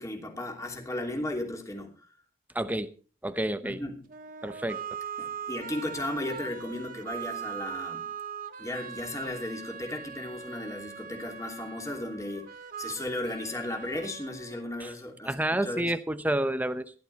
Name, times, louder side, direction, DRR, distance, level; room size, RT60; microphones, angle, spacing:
voice 1, 0.0-1.9 3.6-3.9 5.2-8.1 8.6-12.5 12.8-15.9, left 1 dB, 20° left, 2.9 m, -35 dB
voice 2, 2.5-2.9 3.2-3.8 4.4-4.8 14.8-14.9 15.2-16.9, right 1 dB, 10° right, 0.8 m, -29 dB
sound 1, 4.1-15.1, right 7 dB, 50° right, 1.5 m, -41 dB
16.0 x 12.0 x 4.2 m
head